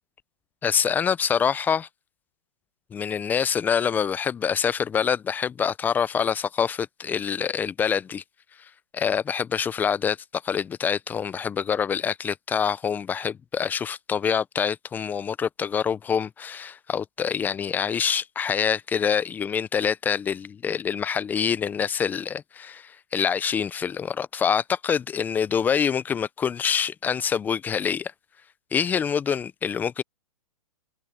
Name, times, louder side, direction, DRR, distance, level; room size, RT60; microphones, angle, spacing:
voice 1, 0.6-1.9 2.9-8.2 8.9-10.2 10.4-28.1 28.7-30.0, left 7 dB, 10° left, 0.4 m, -25 dB
open air
hypercardioid pair, 135°, 18 cm